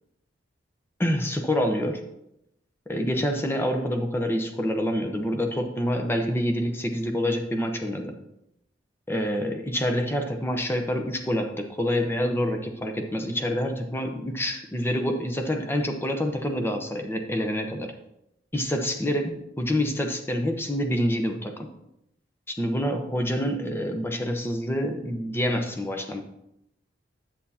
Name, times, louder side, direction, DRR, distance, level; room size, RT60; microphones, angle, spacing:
voice 1, 1.0-2.1 2.9-8.1 9.1-17.9 18.5-21.7 22.5-26.2, equal, 10° left, 4 dB, 0.8 m, -27 dB
10.0 x 8.4 x 2.8 m, 0.81 s
head